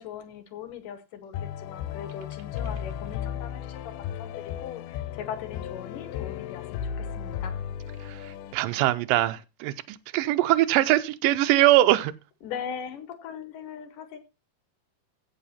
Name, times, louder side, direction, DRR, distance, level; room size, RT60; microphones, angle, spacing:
voice 1, 0.0-7.6 12.4-14.2, left 8 dB, 70° left, 2.4 m, -40 dB
sound 1, 1.3-8.5, left 9 dB, 90° left, 2.6 m, -35 dB
voice 2, 8.0-12.1, right 15 dB, 75° right, 2.2 m, -22 dB
15.5 x 5.7 x 4.2 m
omnidirectional pair, 4.3 m